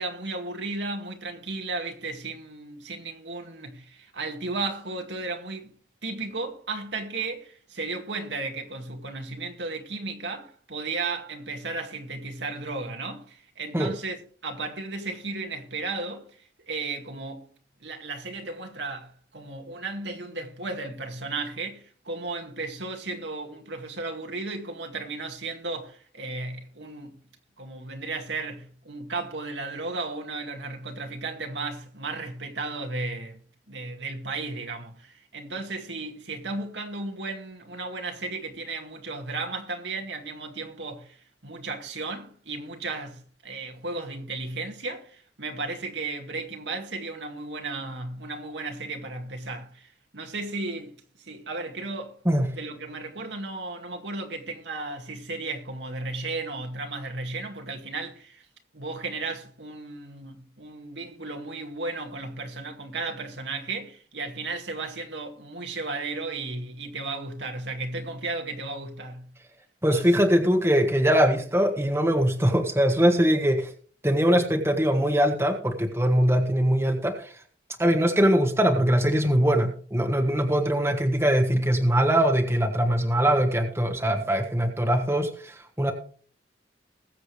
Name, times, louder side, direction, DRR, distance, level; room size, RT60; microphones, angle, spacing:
voice 1, 0.0-5.7 6.0-16.3 16.7-17.5 17.8-27.1 27.6-33.4 33.7-41.2 41.4-49.9 50.1-51.0 51.3-52.2 52.5-58.4 58.7-69.3 69.9-70.1, right 3 dB, 70° right, 2.1 m, -34 dB
voice 2, 69.8-73.7 74.0-77.3 77.8-85.9, equal, 15° right, 1.5 m, -22 dB
20.5 x 7.7 x 3.3 m
head